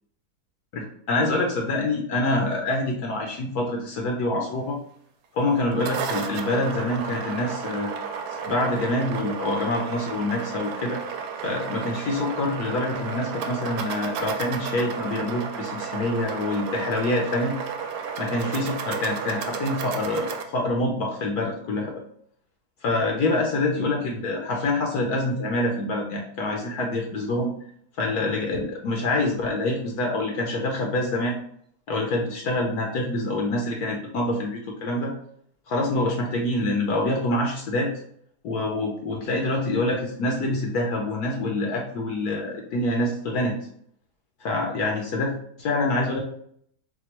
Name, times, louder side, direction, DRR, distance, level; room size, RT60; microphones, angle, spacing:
voice 1, 0.7-4.8 5.3-7.9 8.5-11.0 11.4-17.6 18.2-21.9 22.8-27.5 28.0-31.4 31.9-35.1 35.7-37.9 38.4-43.5 44.4-45.3 45.6-46.2, left 2 dB, 70° left, 1 dB, 1.2 m, -26 dB
sound 1, 5.5-20.4, right 6 dB, 85° right, 1.2 m, -32 dB
4.3 x 2.3 x 4.2 m, 0.65 s
omnidirectional pair, 1.8 m